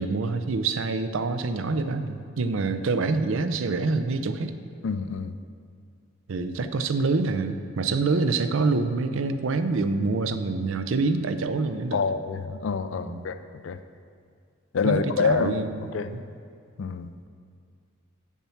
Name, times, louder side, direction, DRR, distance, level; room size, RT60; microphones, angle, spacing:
voice 1, 0.0-4.5 6.3-12.0 13.1-13.3 14.8-16.2, right 3 dB, 70° right, 10 dB, 0.5 m, -26 dB
voice 2, 4.8-5.3 11.9-13.4 13.6-13.8 14.7-15.6 15.9-16.2 16.8-17.1, left 5 dB, 65° left, 11 dB, 0.4 m, -26 dB
7.2 x 5.7 x 7.1 m, 2.2 s
head